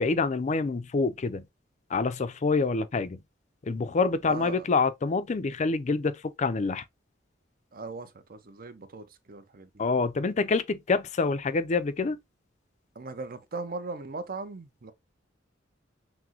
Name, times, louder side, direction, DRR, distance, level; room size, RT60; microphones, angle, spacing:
voice 1, 0.0-1.5 1.9-3.2 3.6-6.8 9.8-12.2, left 4 dB, 35° left, 0.4 m, -26 dB
voice 2, 4.2-4.6 7.7-9.7 13.0-14.9, right 3 dB, 50° right, 0.6 m, -39 dB
5.9 x 2.1 x 2.9 m
head